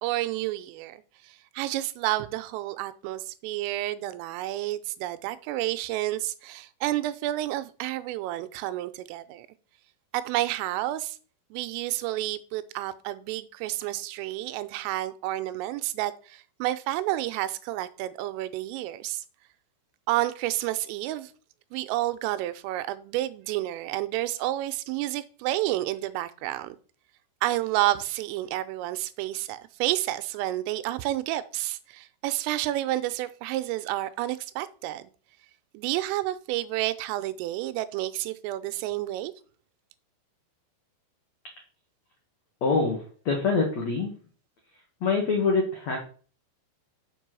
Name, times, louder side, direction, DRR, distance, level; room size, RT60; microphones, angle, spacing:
voice 1, 0.0-1.0 1.6-9.5 10.1-11.2 11.5-19.2 20.1-21.3 21.7-26.8 27.4-35.1 35.7-39.3, right 15 dB, 90° right, 3.3 m, -30 dB
voice 2, 42.6-44.1 44.7-46.0, left 4 dB, 90° left, 1.5 m, -25 dB
7.4 x 5.4 x 6.2 m
omnidirectional pair, 5.7 m